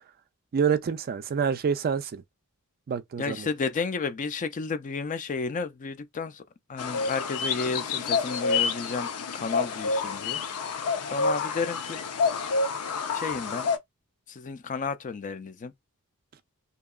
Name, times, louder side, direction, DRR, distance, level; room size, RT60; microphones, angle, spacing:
voice 1, 0.5-2.2 2.9-3.5, right 6 dB, 45° right, 0.3 m, -27 dB
voice 2, 3.2-6.4 6.7-9.1 9.3-10.4 11.1-12.0 13.1-13.7 14.3-15.7, left 4 dB, 35° left, 0.4 m, -32 dB
sound 1, 6.8-13.8, left 4 dB, 85° left, 0.6 m, -28 dB
2.8 x 2.3 x 2.3 m
head